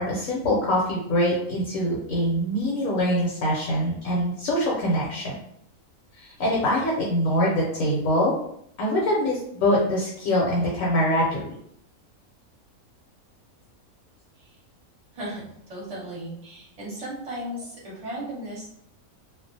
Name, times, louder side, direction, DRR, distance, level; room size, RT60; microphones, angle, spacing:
voice 1, 0.0-5.4 6.2-8.3 8.8-11.5 17.5-17.6, equal, 70° left, -4 dB, 1.0 m, -24 dB
voice 2, 15.7-18.7, right 1 dB, 30° right, -6 dB, 1.0 m, -35 dB
2.4 x 2.1 x 2.6 m, 0.71 s
omnidirectional pair, 1.5 m